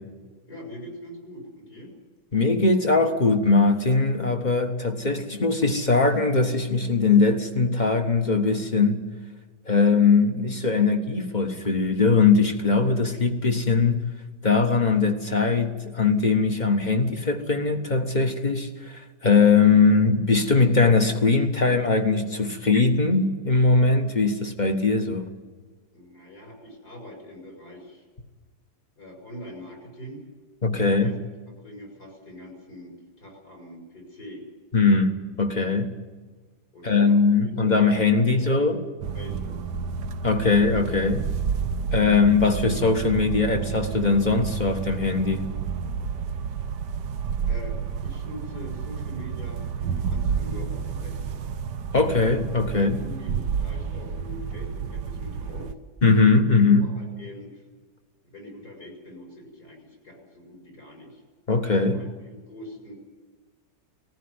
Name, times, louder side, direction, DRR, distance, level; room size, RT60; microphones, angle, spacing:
voice 1, 0.5-1.9 25.9-28.0 29.0-30.3 30.8-31.2 31.5-34.4 36.7-37.5 38.3-38.5 39.1-39.6 47.5-51.4 52.7-55.7 56.8-57.6 58.2-61.2 61.9-62.9, left 1 dB, 60° left, 5.8 m, -43 dB
voice 2, 2.3-9.0 9.6-14.0 14.4-25.3 30.6-31.1 34.7-35.9 36.8-38.8 40.2-41.3 41.9-45.4 51.9-53.0 56.0-56.9 61.5-62.0, left 4 dB, 25° left, 1.5 m, -21 dB
sound 1, 39.0-55.7, right 6 dB, 75° right, 1.5 m, -30 dB
19.5 x 15.0 x 9.7 m
omnidirectional pair, 1.9 m